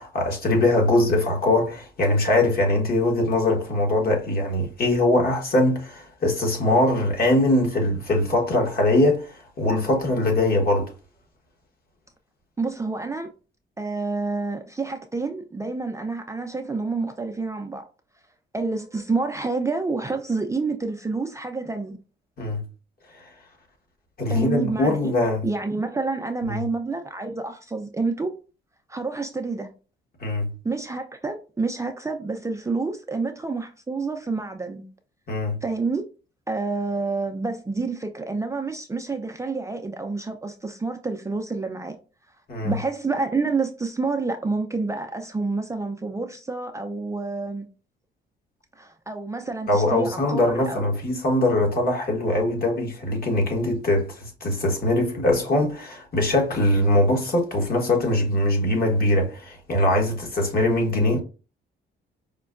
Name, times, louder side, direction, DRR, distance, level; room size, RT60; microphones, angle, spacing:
voice 1, 0.0-10.9 22.4-22.6 24.2-25.4 26.5-26.6 30.2-30.5 35.3-35.6 42.5-42.7 49.7-61.2, left 1 dB, 50° left, 1.3 m, -22 dB
voice 2, 12.6-13.3 13.8-17.8 18.5-22.0 24.3-25.1 25.4-28.3 28.9-29.7 30.6-34.9 35.6-36.0 36.5-42.0 42.6-47.6 48.8-50.9, right 3 dB, 15° right, 0.4 m, -28 dB
5.1 x 2.2 x 2.4 m
cardioid pair, 90°, 20 cm